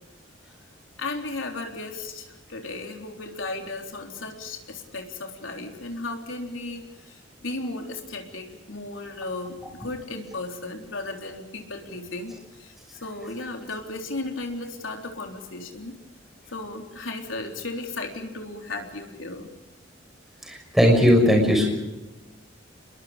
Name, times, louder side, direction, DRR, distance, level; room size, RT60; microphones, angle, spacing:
voice 1, 1.0-12.7 13.0-16.0 16.5-19.5, left 2 dB, 85° left, 3 dB, 3.8 m, -35 dB
voice 2, 20.4-21.6, equal, ahead, 1 dB, 6.2 m, -18 dB
28.5 x 22.0 x 5.2 m, 1.0 s
head